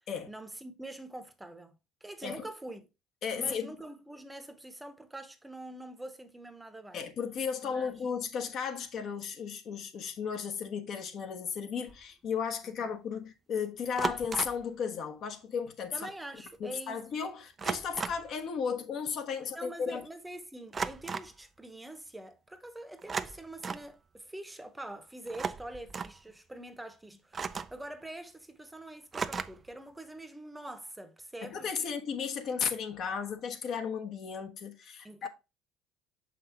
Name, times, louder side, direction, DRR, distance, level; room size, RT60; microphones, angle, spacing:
voice 1, 0.3-1.7 2.0-2.9 3.4-7.0 7.6-7.9 12.8-12.9 15.9-17.0 19.5-31.9 35.0-35.3, right 1 dB, 10° right, 0.9 m, -45 dB
voice 2, 3.2-3.8 6.9-16.1 16.6-20.1 31.4-35.3, left 6 dB, 50° left, 1.1 m, -35 dB
sound 1, 11.9-12.1 14.0-14.7 16.0-16.1 16.4-16.6 17.6-18.3 20.7-21.4 23.0-23.9 25.3-26.2 27.3-27.9 29.1-29.7, right 5 dB, 30° right, 0.4 m, -36 dB
6.5 x 5.7 x 2.8 m
cardioid pair, 115°, 0 cm